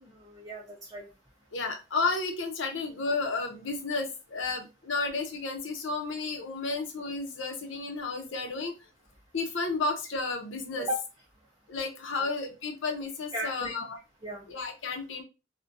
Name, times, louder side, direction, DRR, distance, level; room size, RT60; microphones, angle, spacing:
voice 1, 0.0-1.0 10.8-11.0 12.1-12.3 13.3-13.7 14.2-14.5, right 1 dB, 20° right, -3 dB, 0.5 m, -36 dB
voice 2, 1.5-8.7 9.3-10.9 11.7-14.0 14.5-15.2, left 3 dB, 85° left, 3 dB, 0.6 m, -32 dB
2.5 x 2.1 x 2.6 m, 0.28 s
head